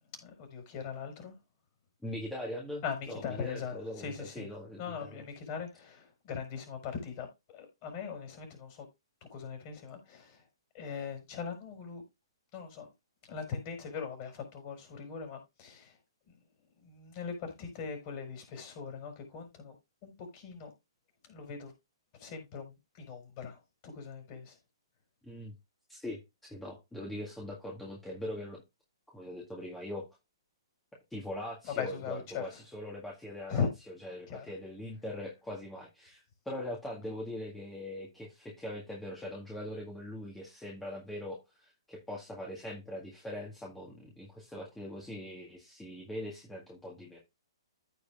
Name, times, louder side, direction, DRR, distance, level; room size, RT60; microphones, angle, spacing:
voice 1, 0.2-1.3 2.8-4.5 4.8-8.8 9.3-10.4 10.7-12.0 12.5-12.9 13.2-16.0 16.3-16.4 16.8-19.7 20.0-20.7 21.3-21.7 22.2-24.6 31.7-32.4 33.5-33.7 34.3-34.5, left 6 dB, 35° left, 4.7 m, -40 dB
voice 2, 2.0-5.2 25.2-25.5 25.9-28.6 29.1-30.1 31.1-33.7 34.0-47.2, left 1 dB, 5° left, 1.8 m, -41 dB
15.0 x 4.9 x 2.5 m
figure-of-eight pair, 120°, 3 cm